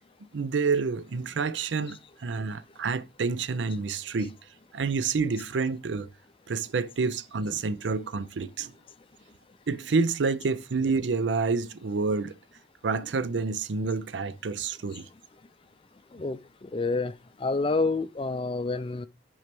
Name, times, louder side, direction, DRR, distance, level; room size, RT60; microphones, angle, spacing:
voice 1, 0.3-4.3 4.7-6.1 6.5-8.7 9.7-12.3 12.8-15.1, right 4 dB, 85° right, 0.5 m, -28 dB
voice 2, 16.7-17.1 17.4-19.1, left 3 dB, 30° left, 0.4 m, -28 dB
6.0 x 4.7 x 5.9 m
head